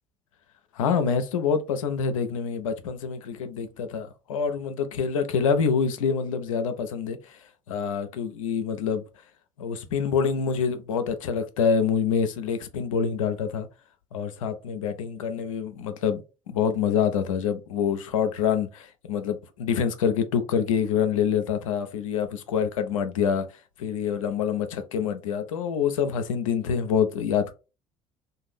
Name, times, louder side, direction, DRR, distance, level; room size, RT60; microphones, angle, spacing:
voice 1, 0.7-7.4 7.7-9.0 9.6-13.7 14.1-16.2 16.5-23.5 23.8-27.5, left 7 dB, 80° left, 0.4 m, -26 dB
2.5 x 2.2 x 3.2 m
figure-of-eight pair, 55°, 17 cm